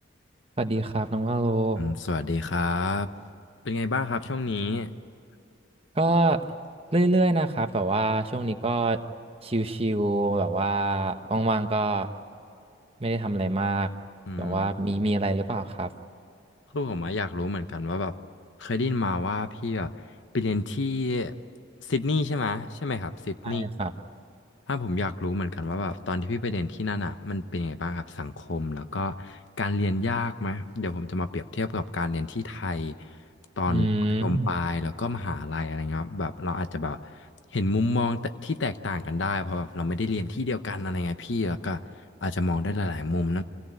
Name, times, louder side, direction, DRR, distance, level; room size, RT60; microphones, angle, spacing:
voice 1, 0.6-1.8 5.9-6.4 6.9-9.0 9.4-12.1 13.0-13.9 14.4-15.9 23.4-23.9 33.7-34.5, right 2 dB, 30° right, 6 dB, 1.1 m, -25 dB
voice 2, 1.8-3.1 3.6-4.9 14.3-14.7 16.7-18.2 18.6-19.9 20.3-21.3 21.8-23.7 24.7-33.1 33.6-33.9 34.2-37.2 37.5-43.4, left 2 dB, 70° left, 10 dB, 0.9 m, -29 dB
27.0 x 17.0 x 9.2 m, 2.7 s
head